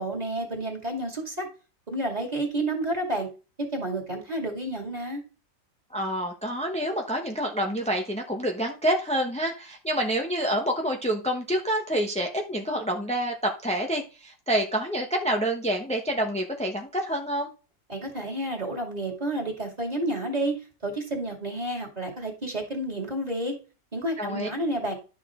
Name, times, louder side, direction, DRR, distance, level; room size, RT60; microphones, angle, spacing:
voice 1, 0.0-1.5 1.9-3.3 3.6-5.2 17.9-23.6 23.9-24.9, right 1 dB, 20° right, 1 dB, 2.5 m, -30 dB
voice 2, 5.9-17.5 24.2-24.5, right 1 dB, 5° left, 2 dB, 0.5 m, -27 dB
11.5 x 6.6 x 3.7 m, 0.34 s
omnidirectional pair, 1.9 m